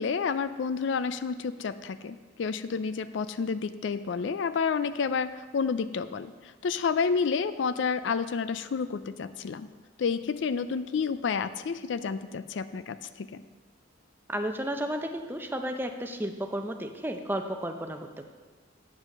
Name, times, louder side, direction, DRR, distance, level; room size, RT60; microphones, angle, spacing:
voice 1, 0.0-6.3 6.6-9.7 10.0-13.4, left 5 dB, 65° left, 13 dB, 0.4 m, -30 dB
voice 2, 14.3-18.3, right 1 dB, 10° right, 5 dB, 0.6 m, -33 dB
8.2 x 7.4 x 6.5 m, 1.4 s
head